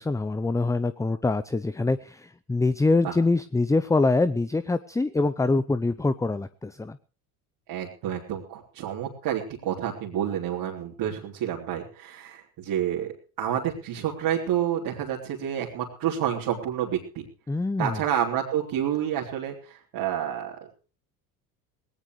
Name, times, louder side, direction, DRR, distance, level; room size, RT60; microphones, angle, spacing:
voice 1, 0.0-7.0 17.5-18.0, left 3 dB, 5° left, 14 dB, 0.6 m, -24 dB
voice 2, 7.7-13.1 13.4-17.3 17.8-20.6, right 10 dB, 60° right, -4 dB, 3.5 m, -29 dB
18.5 x 18.0 x 3.2 m, 0.37 s
hypercardioid pair, 75°, 44 cm